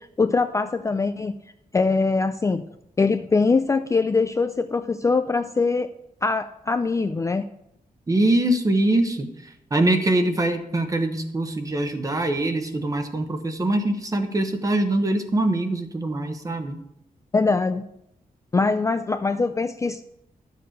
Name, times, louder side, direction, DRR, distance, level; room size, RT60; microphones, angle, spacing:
voice 1, 0.2-1.3 1.7-2.6 3.0-5.9 6.2-7.4 17.3-17.8 18.5-20.0, left 4 dB, 20° left, 9 dB, 0.4 m, -22 dB
voice 2, 8.1-16.8, right 1 dB, 25° right, 7 dB, 1.1 m, -23 dB
12.0 x 6.7 x 6.4 m, 0.79 s
wide cardioid pair, 170°, 15 cm